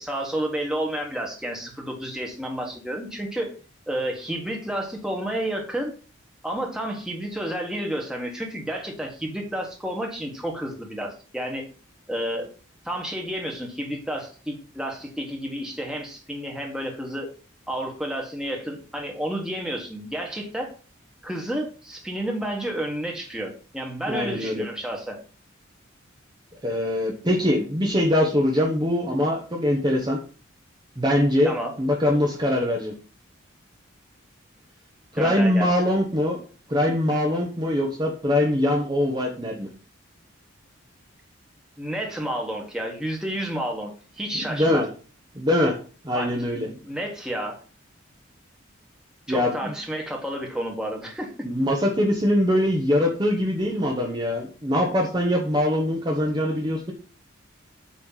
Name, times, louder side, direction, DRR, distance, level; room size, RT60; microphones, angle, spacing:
voice 1, 0.0-3.5 3.9-5.9 6.4-11.7 12.1-12.5 12.8-17.3 17.7-20.7 21.2-25.2 31.4-31.7 35.1-35.8 41.8-43.9 44.2-44.8 46.1-46.3 46.6-47.6 49.3-51.3, right 1 dB, 5° right, 0 dB, 1.5 m, -30 dB
voice 2, 24.1-24.6 26.6-30.2 31.0-32.9 35.1-36.4 36.7-39.7 44.3-44.9 45.3-45.8 46.0-46.7 49.3-49.7 51.4-56.9, left 1 dB, 20° right, -1 dB, 1.0 m, -23 dB
8.4 x 3.3 x 5.7 m, 0.38 s
head